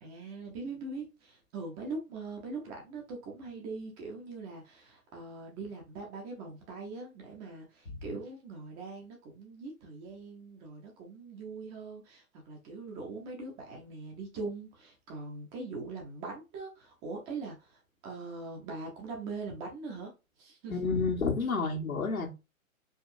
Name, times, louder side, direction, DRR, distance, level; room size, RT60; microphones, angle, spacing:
voice 1, 0.0-20.1 20.4-20.7, right 3 dB, 15° right, 0.6 m, -42 dB
voice 2, 20.7-22.3, left 4 dB, 75° left, 1.6 m, -30 dB
4.8 x 3.1 x 2.6 m
figure-of-eight pair, 120°, 42 cm